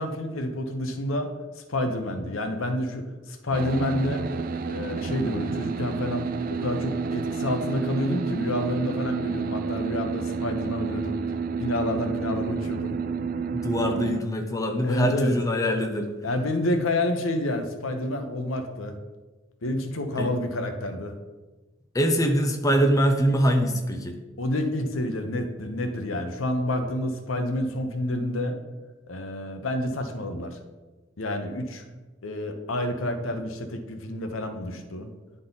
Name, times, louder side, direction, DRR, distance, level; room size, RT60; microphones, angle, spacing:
voice 1, 0.0-4.3 4.7-11.2 11.6-13.0 14.8-15.4 16.2-19.0 19.6-21.1 24.4-28.6 29.1-30.6 31.2-31.8 32.2-35.1, left 1 dB, 90° left, 6 dB, 0.8 m, -29 dB
sound 1, 3.5-14.2, right 5 dB, 45° right, 0.3 m, -30 dB
voice 2, 13.5-16.1 20.2-20.3 21.9-24.2, equal, 15° left, 3 dB, 0.6 m, -23 dB
10.5 x 3.9 x 3.9 m, 1.2 s
head